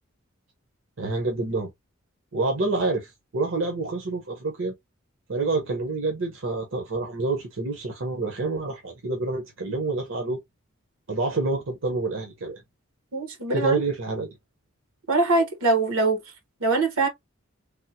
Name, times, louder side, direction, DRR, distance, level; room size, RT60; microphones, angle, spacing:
voice 1, 1.0-1.7 2.3-4.7 5.3-10.4 11.1-12.6 13.5-14.3, right 3 dB, 65° right, 0.8 m, -27 dB
voice 2, 13.1-13.8 15.1-16.2 16.6-17.1, right 3 dB, 80° right, 1.1 m, -22 dB
3.5 x 2.1 x 2.7 m
head